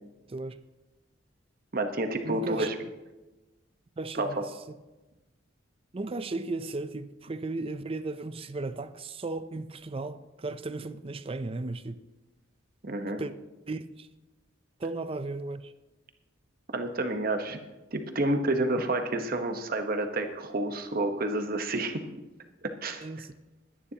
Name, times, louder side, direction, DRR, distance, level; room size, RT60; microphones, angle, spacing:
voice 1, 1.7-2.7 4.2-4.3 12.8-13.2 16.7-17.6 17.9-22.0 22.6-23.1, right 2 dB, 50° right, 1.1 m, -29 dB
voice 2, 2.2-2.7 4.0-4.5 5.9-12.0 13.2-13.3 13.7-14.1 14.8-15.7 23.0-23.3, right 3 dB, 30° right, 0.5 m, -35 dB
21.0 x 10.0 x 2.9 m
head